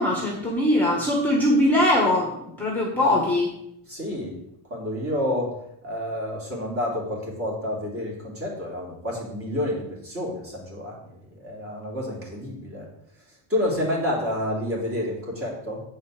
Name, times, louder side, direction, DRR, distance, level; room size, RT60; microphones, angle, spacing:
voice 1, 0.0-3.5, left 1 dB, 5° left, -2 dB, 1.5 m, -21 dB
voice 2, 3.9-4.4 4.7-5.5 5.8-12.9 13.5-15.8, left 1 dB, 25° right, -3 dB, 3.4 m, -29 dB
9.1 x 5.6 x 6.6 m, 0.76 s
cardioid pair, 165°, 49 cm